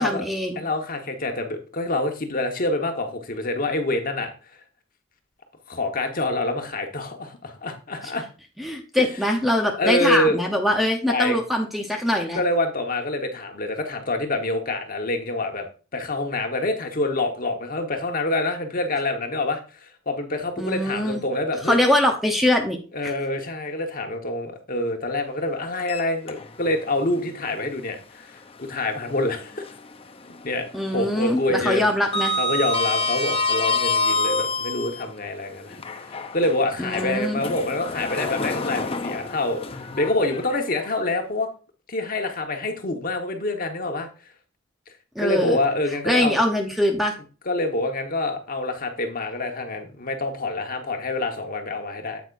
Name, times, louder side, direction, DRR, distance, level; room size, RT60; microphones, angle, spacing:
voice 1, 0.0-0.6 8.6-12.4 20.6-21.2 21.7-22.8 30.7-32.3 36.8-37.4 45.1-45.6 46.0-47.2, left 1 dB, ahead, 3 dB, 0.9 m, -22 dB
voice 2, 0.6-4.3 5.7-8.2 9.8-10.4 11.1-11.4 12.3-15.7 15.9-21.8 22.9-29.6 30.4-31.9 32.4-41.5 41.9-44.1 45.2-46.4 47.5-52.2, left 2 dB, 45° left, 4 dB, 1.3 m, -26 dB
Sliding door, 25.8-26.8 27.2-27.3 29.0-30.0 30.3-30.7 30.9-35.0 35.7-40.9, left 2 dB, 30° left, 0.7 m, -27 dB
8.7 x 8.3 x 2.6 m, 0.35 s
head